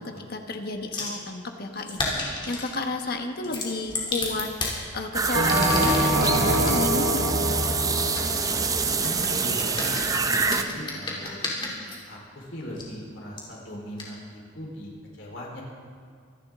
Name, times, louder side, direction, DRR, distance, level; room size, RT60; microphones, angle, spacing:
voice 1, 0.0-4.5 4.9-7.6, left 2 dB, 55° left, 4 dB, 1.4 m, -32 dB
sound 1, 0.9-1.2 1.9-2.7 3.4-4.8 5.3-6.8 7.6-12.0 12.8-12.9 13.4-13.5 14.0-14.1, left 2 dB, 25° left, 2.9 m, -32 dB
sound 2, 5.1-10.6, right 4 dB, 20° right, 0.6 m, -26 dB
Bell, 5.3-9.9, equal, 75° right, 1.6 m, -26 dB
voice 2, 8.8-11.4 12.1-15.6, equal, 85° left, -2 dB, 4.2 m, -39 dB
24.5 x 11.5 x 3.7 m, 2.2 s
head